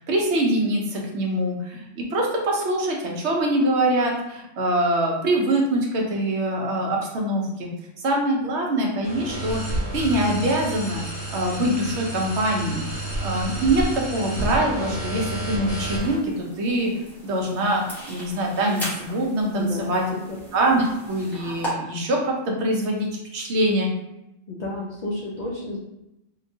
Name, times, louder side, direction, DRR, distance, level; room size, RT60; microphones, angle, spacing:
voice 1, 0.0-7.7 8.0-11.0 11.3-16.3 16.6-16.9 17.2-20.0 20.5-23.9, right 1 dB, 65° right, 0 dB, 0.9 m, -24 dB
sound 1, 9.0-16.1, right 1 dB, 55° left, 1.0 m, -30 dB
sound 2, 15.9-21.7, equal, ahead, 0.8 m, -38 dB
voice 2, 19.6-20.2 24.5-25.8, left 2 dB, 80° left, -3 dB, 0.3 m, -31 dB
2.8 x 2.3 x 2.6 m, 0.89 s
omnidirectional pair, 1.3 m